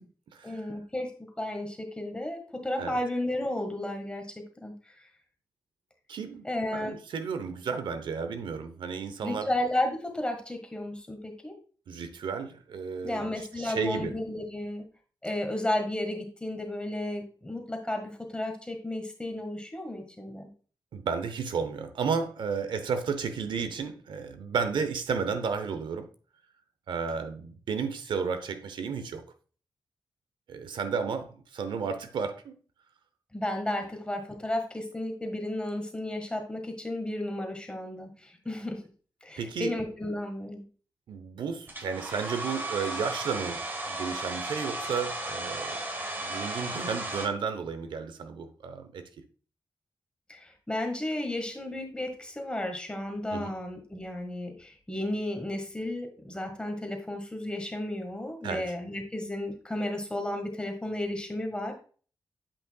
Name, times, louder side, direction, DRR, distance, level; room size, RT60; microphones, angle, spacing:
voice 1, 0.4-1.1 1.4-4.7 6.4-6.9 9.2-11.6 13.0-14.8 15.2-20.5 33.3-38.8 39.2-40.6 50.3-61.7, left 1 dB, 10° left, 1.5 m, -33 dB
voice 2, 6.1-6.4 6.7-9.5 11.9-14.2 20.9-26.1 26.9-29.2 30.5-32.6 39.4-39.7 41.1-45.8 46.2-49.0 53.3-53.5 58.4-58.7, right 5 dB, 90° right, 0.8 m, -33 dB
Domestic sounds home sounds, 41.7-47.3, right 1 dB, 25° right, 1.3 m, -35 dB
8.4 x 5.5 x 2.3 m
wide cardioid pair, 95°, 8 cm